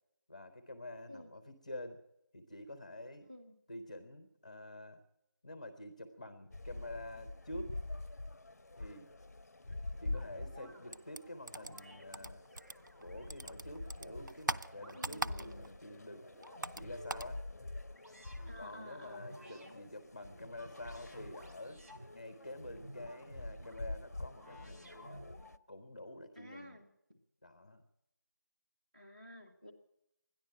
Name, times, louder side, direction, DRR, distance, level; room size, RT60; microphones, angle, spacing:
voice 1, 0.3-2.0 2.3-3.3 3.7-5.0 5.4-7.8 8.8-9.1 10.0-12.4 13.0-16.3 16.7-17.4 18.6-21.8 22.1-25.2 25.7-26.8 27.4-27.8, left 1 dB, 20° left, 9 dB, 0.8 m, -48 dB
sound 1, 6.5-25.6, left 2 dB, 55° left, 0.5 m, -47 dB
sound 2, 10.1-10.8 11.5-12.0 12.5-14.3 14.7-15.6 16.1-17.3 17.9-18.5 19.1-19.7 20.2-22.1 22.6-23.8 24.3-25.6, equal, 45° right, 4.2 m, -54 dB
sound 3, 10.9-13.0 13.3-15.8 16.1-17.4, right 2 dB, 90° right, 0.6 m, -41 dB
voice 2, 14.9-15.6 18.5-19.8 26.4-26.9 28.9-29.7, left 1 dB, 25° right, -3 dB, 1.8 m, -52 dB
13.5 x 10.5 x 9.9 m, 0.83 s
figure-of-eight pair, 175°, 10 cm